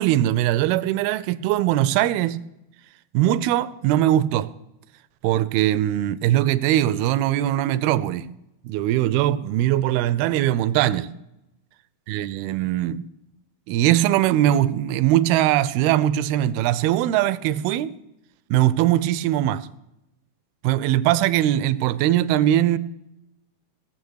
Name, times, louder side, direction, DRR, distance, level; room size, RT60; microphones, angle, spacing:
voice 1, 0.0-2.4 3.1-4.5 5.2-8.3 8.6-11.1 12.1-13.0 13.7-17.9 18.5-19.7 20.6-22.8, right 13 dB, 80° right, 2.4 m, -21 dB
17.5 x 7.1 x 6.4 m
omnidirectional pair, 4.5 m